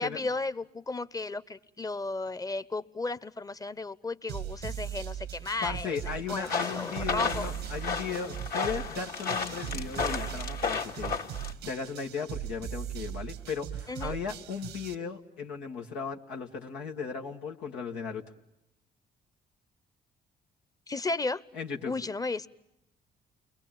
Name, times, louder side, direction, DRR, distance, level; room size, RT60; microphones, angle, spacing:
voice 1, 0.0-6.0 6.3-7.5 13.9-14.2 20.9-21.4 21.8-22.5, left 3 dB, 20° left, 16 dB, 0.9 m, -34 dB
sound 1, 4.3-14.9, right 10 dB, 85° right, 1.2 m, -39 dB
voice 2, 5.6-18.2 21.5-21.9, left 6 dB, 90° left, 1 dB, 1.7 m, -36 dB
sound 2, 6.4-11.5, left 5 dB, 65° left, 2.4 m, -33 dB
29.5 x 21.5 x 9.0 m, 0.87 s
supercardioid pair, 65°, 17 cm